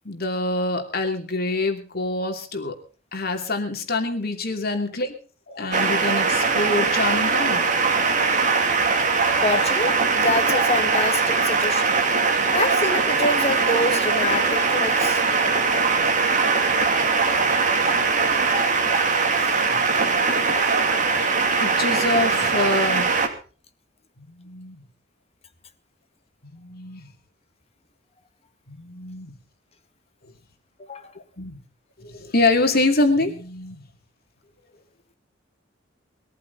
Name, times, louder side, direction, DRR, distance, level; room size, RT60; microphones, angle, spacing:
voice 1, 0.0-2.8 3.1-5.1 5.5-7.7 17.6-18.0 19.7-20.3 21.1-21.3 21.6-23.2 24.2-24.8 26.4-27.1 28.7-29.3 31.4-31.6 32.0-33.8, left 2 dB, 55° left, 2.8 m, -26 dB
sound 1, 5.7-23.3, right 4 dB, 40° right, 2.8 m, -21 dB
voice 2, 9.4-12.0 12.5-15.2 19.3-19.8 30.8-31.1, left 2 dB, 35° left, 1.9 m, -26 dB
21.5 x 14.0 x 4.0 m
head